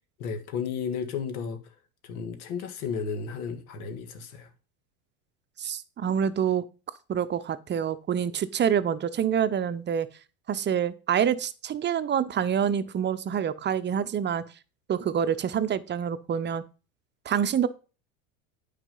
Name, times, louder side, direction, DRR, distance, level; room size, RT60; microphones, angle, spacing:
voice 1, 0.2-1.7 2.0-4.5, left 6 dB, 80° left, 1.8 m, -33 dB
voice 2, 5.6-6.6 7.1-10.1 10.5-14.4 14.9-16.6 17.2-17.7, right 8 dB, 25° right, 0.7 m, -26 dB
9.0 x 4.8 x 5.4 m
hypercardioid pair, 85°, 43 cm